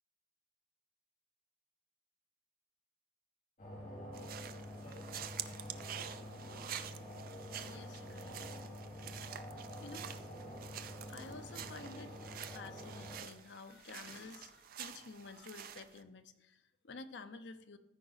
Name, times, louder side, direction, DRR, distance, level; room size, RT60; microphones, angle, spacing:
sound 1, 3.6-13.2, left 1 dB, 45° left, 2.0 m, -47 dB
sound 2, 4.1-16.0, right 10 dB, 55° right, 0.5 m, -48 dB
voice 1, 7.5-8.4 9.8-10.1 11.0-17.8, left 4 dB, 70° left, 9 dB, 0.6 m, -51 dB
14.5 x 4.8 x 4.1 m, 0.90 s
head